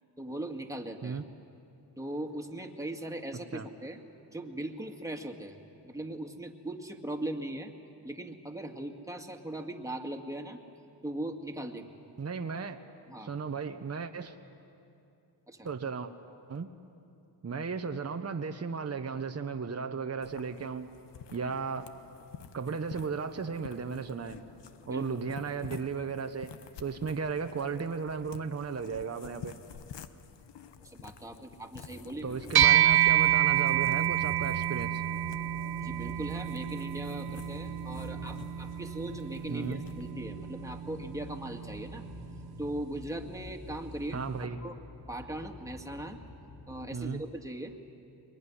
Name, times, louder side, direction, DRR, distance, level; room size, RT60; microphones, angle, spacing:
voice 1, 0.2-1.2 2.0-4.0 4.3-5.6 5.8-7.7 8.0-10.6 11.0-11.9 13.1-13.3 15.5-15.7 24.9-25.2 30.8-32.4 35.8-42.0 42.6-44.2 44.6-44.8 45.1-46.2 46.7-47.9, right 1 dB, 10° right, 2 dB, 2.1 m, -39 dB
voice 2, 12.2-12.8 13.2-14.4 15.6-16.1 16.5-16.7 17.4-20.9 21.3-21.9 22.5-24.4 24.9-26.5 26.8-29.6 32.2-35.0 39.5-39.9 44.1-44.6 46.9-47.2, right 5 dB, 35° right, 6 dB, 1.1 m, -35 dB
sound 1, 20.2-40.1, left 7 dB, 75° left, 1.1 m, -49 dB
sound 2, 31.9-47.0, left 1 dB, 30° left, 2.2 m, -48 dB
sound 3, 32.6-42.2, right 12 dB, 60° right, 0.6 m, -28 dB
23.5 x 21.0 x 9.9 m, 2.7 s
cardioid pair, 75°, 42 cm